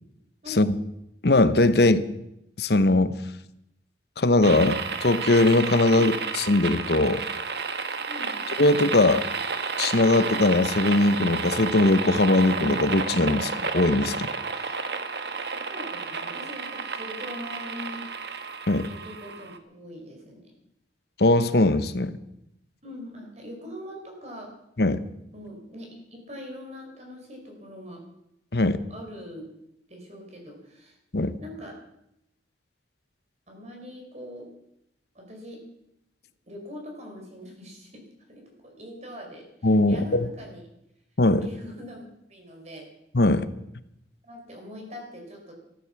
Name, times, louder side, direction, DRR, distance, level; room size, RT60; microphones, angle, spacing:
voice 1, 0.4-0.8 5.9-6.2 8.1-8.4 14.5-18.0 18.9-20.5 22.8-24.5 25.3-28.0 28.9-29.4 29.9-31.0 31.4-31.8 33.5-34.5 35.1-35.6 36.5-40.6 41.4-42.0 42.3-42.9 44.2-45.5, left 1 dB, 40° right, 1 dB, 5.0 m, -42 dB
voice 2, 1.2-2.0 2.6-3.2 4.2-6.1 6.5-7.2 8.6-9.2 9.8-14.3 18.7-18.9 21.2-22.2 24.8-25.0 28.5-28.8 31.1-31.4 39.6-40.2 41.2-41.5 43.1-43.5, left 2 dB, 60° left, 13 dB, 1.0 m, -20 dB
sound 1, 4.4-19.6, right 4 dB, 65° right, 1.3 m, -31 dB
14.0 x 13.5 x 7.1 m, 0.81 s
head